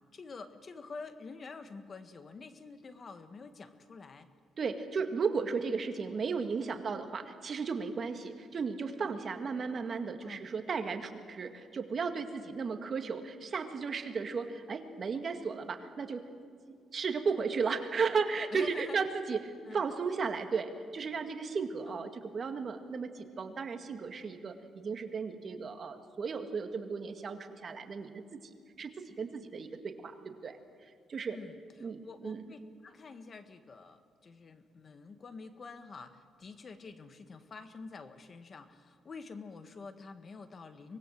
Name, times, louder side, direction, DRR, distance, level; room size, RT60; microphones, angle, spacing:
voice 1, 0.1-4.3 10.2-10.5 18.5-19.0 19.7-19.8 21.9-22.0 31.3-41.0, left 4 dB, 40° left, 9 dB, 1.6 m, -47 dB
voice 2, 4.6-16.2 16.7-28.4 28.8-31.4 31.8-32.4, right 5 dB, 45° right, 6 dB, 2.0 m, -35 dB
24.5 x 20.5 x 7.6 m, 2.1 s
cardioid pair, 90°, 0 cm